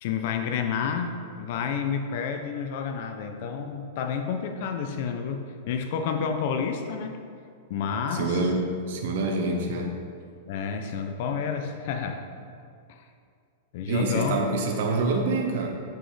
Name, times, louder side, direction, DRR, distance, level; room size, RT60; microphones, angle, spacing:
voice 1, 0.0-7.2 7.7-8.4 10.5-12.2 12.9-13.0 13.7-14.4, left 6 dB, 50° left, 6 dB, 0.5 m, -30 dB
voice 2, 8.1-9.9 13.8-15.7, right 2 dB, 60° right, 2 dB, 1.0 m, -26 dB
7.2 x 6.1 x 3.3 m, 2.3 s
supercardioid pair, 165°, 0 cm